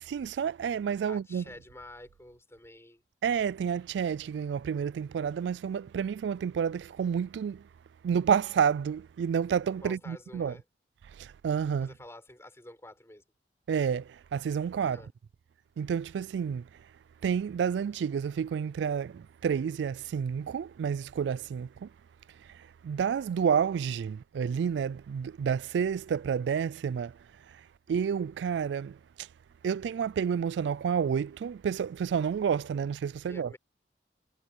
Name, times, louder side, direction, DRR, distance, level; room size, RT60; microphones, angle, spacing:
voice 1, 0.0-1.4 3.2-7.6 8.0-10.5 11.2-11.9 13.7-15.0 15.8-16.7 17.2-21.9 22.8-27.1 27.9-29.3 29.6-33.5, right 7 dB, 80° right, 0.3 m, -30 dB
voice 2, 1.1-3.0 9.8-10.6 11.8-13.2 14.8-15.1 32.6-32.8 33.2-33.6, left 1 dB, 15° left, 4.4 m, -49 dB
head